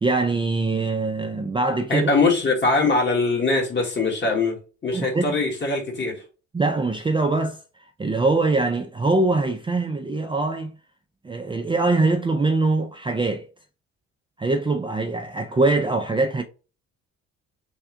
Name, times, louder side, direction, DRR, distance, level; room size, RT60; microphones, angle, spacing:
voice 1, 0.0-2.1 4.9-5.4 6.5-7.6 8.0-10.7 11.2-13.5 14.4-16.4, right 3 dB, 15° right, 0.4 m, -23 dB
voice 2, 1.9-4.6 4.8-6.1, left 3 dB, 40° left, 1.7 m, -22 dB
3.5 x 2.4 x 4.5 m
cardioid pair, 90°, 30 cm